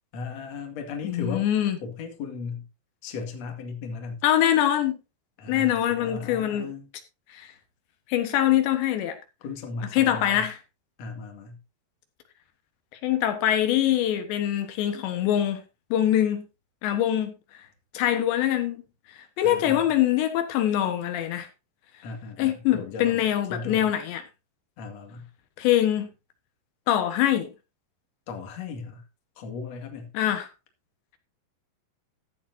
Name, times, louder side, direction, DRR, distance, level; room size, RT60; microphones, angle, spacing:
voice 1, 0.1-1.5 1.8-2.7 3.0-4.2 5.4-6.9 9.4-10.4 11.0-11.6 19.4-19.9 22.0-23.9 24.8-25.3 28.3-29.0 29.4-30.1, left 4 dB, 45° left, 2.9 m, -36 dB
voice 2, 1.0-1.8 4.2-5.0 5.5-6.7 7.4-7.5 8.1-9.2 9.9-10.6 13.0-15.6 15.9-16.5 16.8-17.3 18.0-18.8 19.4-21.5 22.4-24.2 25.6-26.1 26.9-27.5 30.2-30.5, left 11 dB, 85° left, 3.6 m, -23 dB
14.5 x 10.5 x 2.8 m
omnidirectional pair, 5.0 m